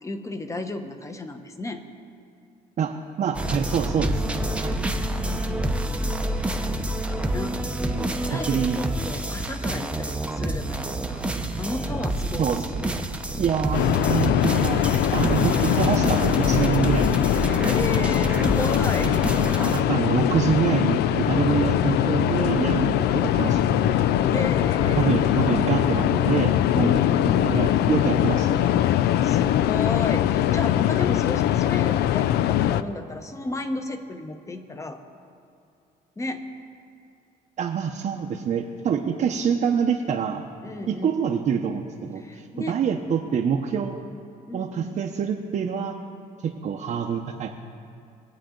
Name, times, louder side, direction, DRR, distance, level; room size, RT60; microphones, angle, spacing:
voice 1, 0.0-1.8 4.9-6.0 6.3-6.8 7.1-11.3 11.6-13.0 17.6-19.2 24.3-25.2 26.8-27.6 29.2-35.0 36.2-36.5 39.3-39.4 40.6-41.3 42.2-42.8 44.5-45.0, left 2 dB, 20° left, 7 dB, 1.0 m, -34 dB
voice 2, 2.8-4.9 7.9-8.8 12.4-12.9 13.4-14.8 15.1-17.4 19.7-23.8 24.9-28.7 37.6-40.4 40.9-44.0 44.5-46.0 46.4-47.5, right 7 dB, 45° right, 1 dB, 0.8 m, -26 dB
sound 1, 3.3-19.8, right 1 dB, 5° right, 0.8 m, -28 dB
sound 2, 10.7-25.3, right 8 dB, 80° right, 0.6 m, -39 dB
sound 3, 13.7-32.8, left 12 dB, 75° left, 0.4 m, -22 dB
22.0 x 8.3 x 3.8 m, 2.5 s
cardioid pair, 110°, 17 cm